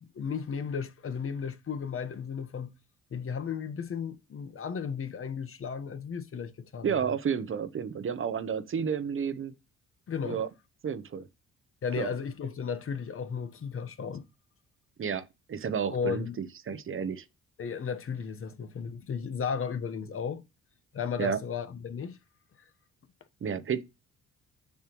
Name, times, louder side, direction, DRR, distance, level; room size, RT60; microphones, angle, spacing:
voice 1, 0.1-2.7 3.1-7.1 10.1-10.4 11.8-14.3 15.9-16.4 17.6-20.4 20.9-22.2, left 6 dB, 45° left, 1.1 m, -34 dB
voice 2, 6.8-9.5 10.2-10.5 10.8-11.2 12.0-12.1 15.0-17.2 21.2-21.4 23.4-23.8, right 7 dB, 45° right, 0.9 m, -31 dB
7.0 x 6.6 x 3.0 m
cardioid pair, 90°, 30 cm